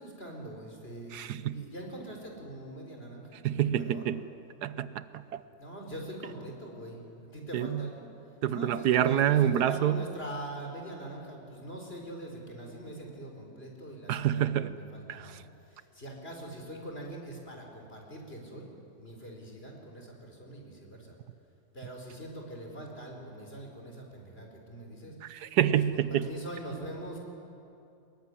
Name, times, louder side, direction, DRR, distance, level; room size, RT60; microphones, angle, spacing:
voice 1, 0.0-4.1 5.4-8.1 8.5-15.4 15.7-18.7 19.0-21.2 21.7-25.5 26.1-27.2, right 1 dB, 35° left, 1 dB, 4.9 m, -43 dB
voice 2, 1.1-1.6 3.4-4.2 4.6-5.4 7.5-7.9 8.4-10.1 14.1-14.8 15.1-15.4 25.3-26.3, right 10 dB, 80° right, 14 dB, 1.3 m, -27 dB
24.5 x 21.5 x 9.9 m, 2.7 s
omnidirectional pair, 1.7 m